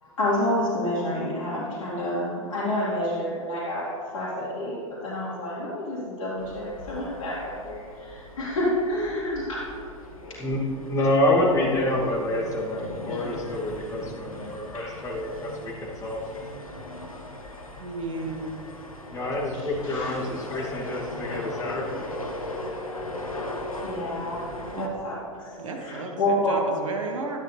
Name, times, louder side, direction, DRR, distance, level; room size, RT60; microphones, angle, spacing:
voice 1, 0.0-9.4 10.2-10.3 14.7-15.0 19.5-20.2 20.5-20.8 23.8-25.6 25.8-26.6, left 1 dB, 65° left, -8 dB, 2.5 m, -29 dB
sound 1, 6.4-24.9, left 1 dB, 85° left, 1.3 m, -39 dB
voice 2, 10.9-16.2 19.1-22.2, left 1 dB, 20° left, -4 dB, 2.4 m, -27 dB
voice 3, 17.8-18.5 24.7-24.9 25.6-27.4, right 3 dB, 70° right, 2 dB, 1.4 m, -33 dB
12.5 x 10.0 x 3.3 m, 2.5 s
figure-of-eight pair, 100°, 18 cm